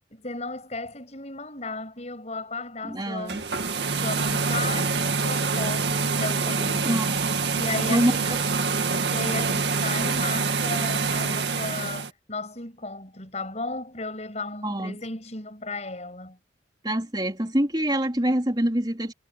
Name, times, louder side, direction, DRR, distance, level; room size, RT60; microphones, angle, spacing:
voice 1, 0.1-3.4 4.0-7.2 7.5-8.5 9.1-16.4, left 3 dB, 40° left, 7.4 m, -35 dB
voice 2, 2.9-3.4 6.8-7.1 7.9-8.4 14.6-15.0 16.8-19.1, right 1 dB, 25° right, 3.7 m, -25 dB
sound 1, 3.2-12.1, right 4 dB, 75° right, 2.0 m, -26 dB
head